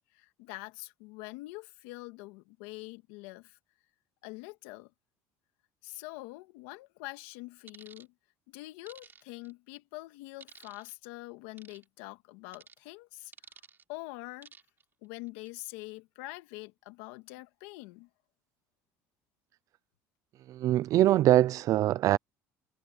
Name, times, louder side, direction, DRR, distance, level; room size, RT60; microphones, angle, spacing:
voice 1, 0.1-3.6 4.2-4.9 5.8-8.1 8.5-13.3 13.9-14.5 15.0-18.1, left 22 dB, 85° left, 2.0 m, -45 dB
sound 1, 7.7-8.1 8.9-9.5 10.4-10.9 11.6-11.8 12.5-12.8 13.3-13.8 14.4-14.8 15.3-15.5, right 6 dB, 35° right, 3.6 m, -53 dB
voice 2, 20.5-22.2, right 13 dB, 55° right, 0.5 m, -23 dB
supercardioid pair, 95°, 7 cm